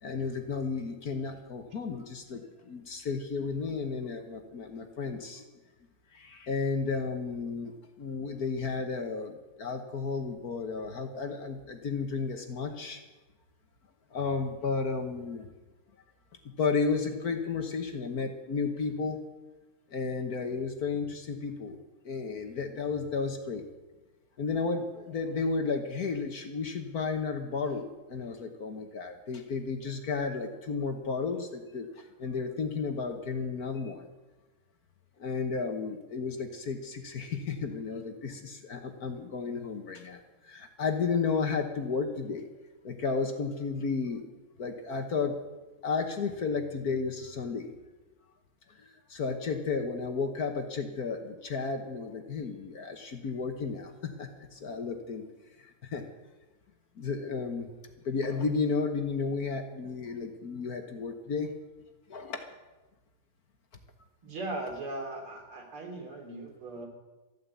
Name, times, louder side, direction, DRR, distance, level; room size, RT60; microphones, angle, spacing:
voice 1, 0.0-5.4 6.1-13.0 14.1-15.5 16.6-19.2 19.9-21.8 22.0-23.6 24.4-34.1 35.2-42.5 42.8-44.2 44.6-45.4 45.8-47.7 48.8-55.2 55.6-56.0 57.0-57.7 58.0-61.5 62.1-62.4, left 4 dB, 50° left, 6 dB, 1.5 m, -33 dB
voice 2, 64.2-66.9, right 2 dB, 80° right, 2 dB, 3.7 m, -38 dB
14.0 x 9.5 x 8.3 m, 1.1 s
omnidirectional pair, 2.3 m